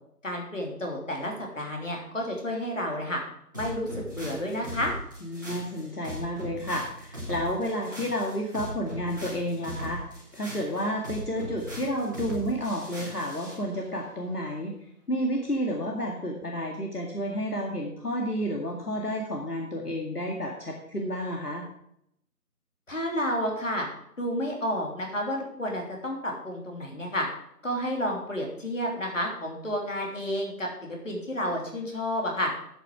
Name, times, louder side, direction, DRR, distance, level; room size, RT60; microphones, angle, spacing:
voice 1, 0.2-3.2 3.5-4.9 22.9-23.9 24.2-27.3 27.6-32.5, equal, 55° left, 0 dB, 3.2 m, -30 dB
sound 1, 3.5-13.6, equal, 15° right, 1.6 m, -39 dB
voice 2, 5.2-10.0 10.3-14.7 15.1-21.7, equal, 75° left, 0 dB, 2.1 m, -31 dB
9.4 x 8.4 x 4.8 m, 0.74 s
figure-of-eight pair, 165°, 46 cm